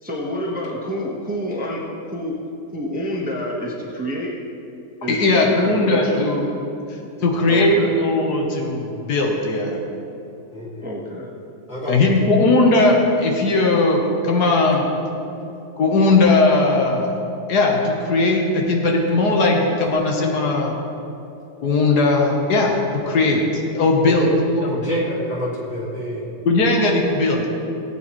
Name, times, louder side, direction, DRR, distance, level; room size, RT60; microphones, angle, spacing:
voice 1, 0.0-2.4 2.7-4.3 5.0-6.3 7.5-7.9 10.8-11.3, equal, 5° right, -3 dB, 1.0 m, -28 dB
voice 2, 5.0-6.5 7.2-9.8 11.9-14.9 15.8-17.1 17.5-20.8 21.6-22.8 23.0-23.4 23.7-24.3 24.6-24.8 26.4-27.5, left 2 dB, 85° left, 1 dB, 1.7 m, -18 dB
voice 3, 7.2-7.6 10.5-10.9 11.7-12.3 24.0-26.3, equal, 40° left, -7 dB, 2.8 m, -28 dB
18.0 x 8.7 x 3.2 m, 2.7 s
omnidirectional pair, 1.7 m